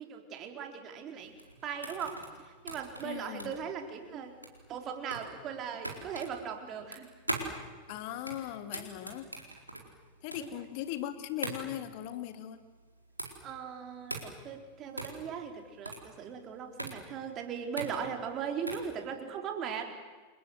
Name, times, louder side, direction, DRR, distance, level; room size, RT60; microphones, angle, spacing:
voice 1, 0.0-1.3 1.6-4.3 4.7-7.1 8.7-9.0 10.4-10.7 13.4-20.0, right 7 dB, 30° right, 4 dB, 4.0 m, -39 dB
sound 1, 1.2-18.9, right 1 dB, 85° right, 4.3 m, -42 dB
voice 2, 3.0-3.5 7.9-9.3 10.2-12.6, left 12 dB, 45° left, 9 dB, 2.5 m, -39 dB
29.5 x 25.0 x 8.1 m, 1.3 s
figure-of-eight pair, 90°, 0 cm